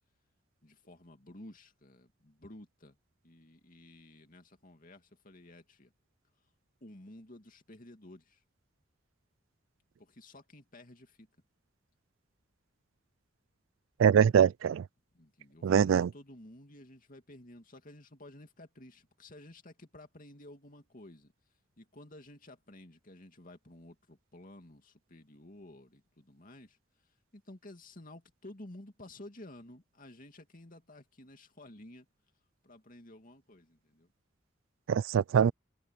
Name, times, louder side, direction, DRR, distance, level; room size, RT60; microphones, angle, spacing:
voice 1, 0.6-3.0 3.2-5.9 6.8-8.4 10.0-11.3 15.1-21.3 21.8-26.8 27.3-32.1 32.6-34.1, left 1 dB, 45° left, 2.7 m, -53 dB
voice 2, 14.0-14.8 15.6-16.1 34.9-35.5, right 7 dB, 90° right, 0.3 m, -23 dB
head